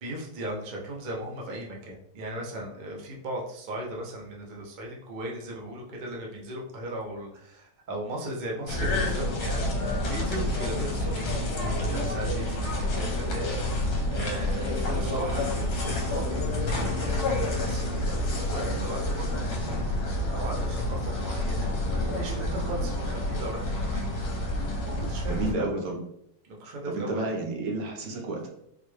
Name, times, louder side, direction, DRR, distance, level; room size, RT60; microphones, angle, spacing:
voice 1, 0.0-17.2 17.4-21.7 22.1-24.2 24.8-25.8 26.4-27.2 28.0-28.3, right 1 dB, 90° right, -1 dB, 0.4 m, -37 dB
sound 1, 8.7-25.5, left 1 dB, 70° left, 1.2 m, -29 dB
voice 2, 25.3-26.0 26.9-28.5, right 2 dB, 65° right, 1 dB, 1.1 m, -31 dB
4.0 x 2.2 x 3.1 m, 0.72 s
omnidirectional pair, 1.9 m